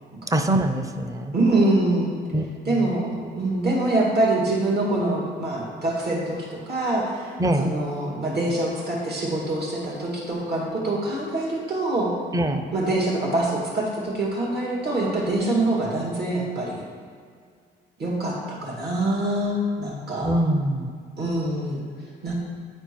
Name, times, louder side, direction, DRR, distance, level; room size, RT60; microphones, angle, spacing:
voice 1, 0.3-1.3 2.3-2.9 7.4-7.7 12.3-12.7 20.2-21.0, right 1 dB, 15° right, 6 dB, 0.6 m, -24 dB
voice 2, 1.3-2.2 2.7-6.4 6.7-7.3 7.6-12.1 12.7-16.8 18.0-20.3 21.2-21.8 22.2-22.3, right 2 dB, 55° right, -4 dB, 2.2 m, -24 dB
9.8 x 4.4 x 4.6 m, 2.1 s
cardioid pair, 90°, 20 cm